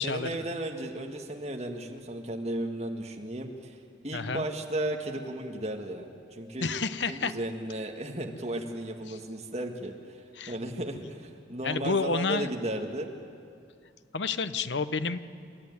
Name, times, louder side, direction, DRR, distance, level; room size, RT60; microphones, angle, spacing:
voice 1, 0.0-3.8 4.0-6.7 7.1-9.9 10.5-13.1, right 1 dB, 35° right, 2 dB, 2.0 m, -34 dB
voice 2, 4.1-4.4 6.6-7.3 9.1-9.2 10.4-10.6 11.6-12.5 14.1-15.2, left 4 dB, 85° left, 12 dB, 0.9 m, -29 dB
28.5 x 14.0 x 9.7 m, 2.3 s
head